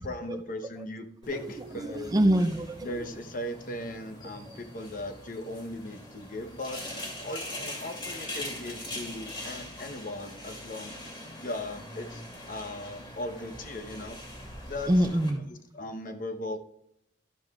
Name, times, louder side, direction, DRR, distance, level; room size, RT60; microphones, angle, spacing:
voice 1, 0.0-2.2 2.8-6.8 7.2-11.0 11.4-14.2 14.7-14.9 15.7-16.6, left 1 dB, 45° left, 7 dB, 0.9 m, -38 dB
sound 1, 1.2-15.3, left 1 dB, 25° left, 2.7 m, -42 dB
voice 2, 1.4-2.9 4.5-4.6 14.9-15.4, right 1 dB, 20° right, 9 dB, 0.4 m, -26 dB
13.0 x 10.5 x 2.4 m, 0.75 s
head